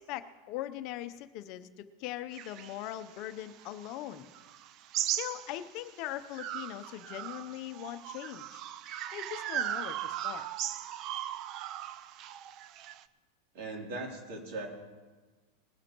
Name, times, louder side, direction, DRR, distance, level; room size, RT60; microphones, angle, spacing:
voice 1, 0.0-4.3 5.2-8.6 9.1-10.5, left 13 dB, 45° left, 10 dB, 0.6 m, -40 dB
sound 1, 2.3-5.9 6.3-13.0, right 11 dB, 40° right, 0.4 m, -38 dB
voice 2, 13.5-14.7, right 2 dB, 55° right, 0 dB, 3.0 m, -39 dB
20.5 x 12.5 x 3.0 m, 1.3 s
supercardioid pair, 145°, 0 cm